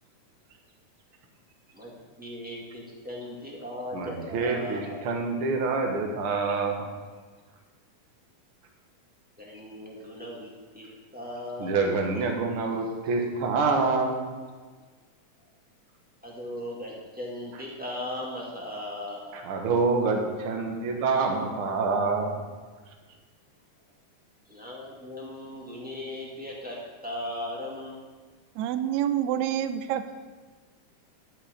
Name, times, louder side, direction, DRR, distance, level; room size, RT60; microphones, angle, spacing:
voice 1, 2.2-5.0 9.4-10.5 10.7-10.9 11.1-11.9 16.2-19.4 24.5-26.8 27.0-28.0, left 1 dB, 5° right, -4 dB, 1.4 m, -37 dB
voice 2, 3.9-6.9 11.6-14.1 19.3-22.4, right 4 dB, 55° right, 2 dB, 1.8 m, -26 dB
voice 3, 28.5-30.2, right 10 dB, 80° right, 10 dB, 1.7 m, -27 dB
11.5 x 7.3 x 5.1 m, 1.4 s
omnidirectional pair, 3.6 m